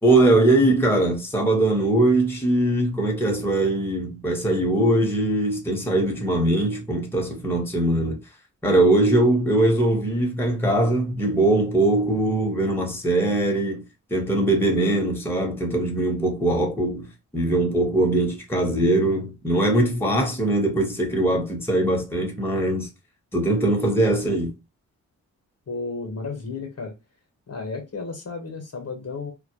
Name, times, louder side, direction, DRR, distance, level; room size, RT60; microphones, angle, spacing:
voice 1, 0.0-8.2 8.6-13.8 14.1-22.9 23.3-24.5, right 1 dB, 5° left, 0.9 m, -21 dB
voice 2, 25.7-26.9 27.5-29.3, left 4 dB, 45° left, 0.9 m, -33 dB
2.1 x 2.0 x 3.0 m
supercardioid pair, 50°, 35 cm